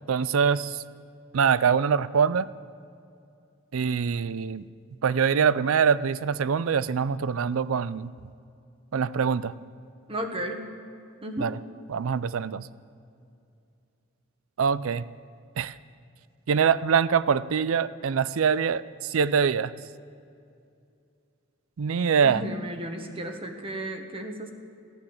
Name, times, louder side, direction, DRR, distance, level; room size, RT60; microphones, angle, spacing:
voice 1, 0.1-0.8 1.3-2.5 3.7-4.7 5.0-8.1 8.9-9.5 11.4-11.5 11.9-12.7 14.6-15.1 15.6-15.7 16.5-19.7 21.8-22.4, right 6 dB, 75° right, 17 dB, 0.4 m, -24 dB
voice 2, 10.1-10.7 11.2-11.6 22.2-24.5, equal, 25° right, 4 dB, 1.3 m, -34 dB
14.5 x 12.5 x 7.1 m, 2.5 s
head